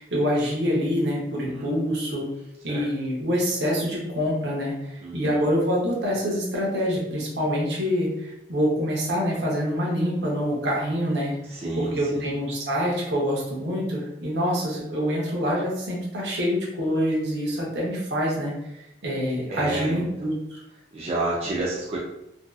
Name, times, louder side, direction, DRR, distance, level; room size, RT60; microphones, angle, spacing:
voice 1, 0.0-2.3 2.6-11.3 11.8-20.6, equal, 70° right, -3 dB, 0.7 m, -26 dB
voice 2, 1.4-1.8 2.7-2.9 5.0-5.5 11.4-12.4 19.5-20.1 20.9-22.0, right 2 dB, 35° right, -5 dB, 0.4 m, -30 dB
2.6 x 2.2 x 2.3 m, 0.86 s
head